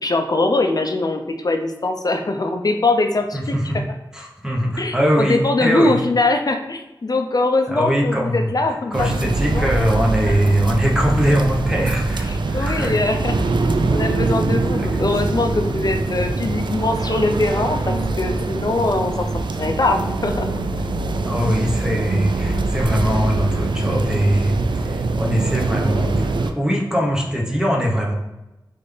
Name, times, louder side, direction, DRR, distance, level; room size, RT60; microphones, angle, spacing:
voice 1, 0.0-3.5 4.8-9.1 9.4-9.7 10.3-10.4 11.7-11.8 12.3-13.4 13.9-19.3 19.6-20.5, left 2 dB, 50° left, 5 dB, 0.5 m, -22 dB
voice 2, 3.3-3.8 4.1-6.0 7.7-8.5 8.9-13.0 14.8-15.0 21.2-28.1, equal, 10° right, -2 dB, 1.0 m, -21 dB
sound 1, 8.9-26.5, right 3 dB, 70° right, 0.4 m, -23 dB
4.1 x 3.3 x 3.3 m, 0.98 s
wide cardioid pair, 70°, 8 cm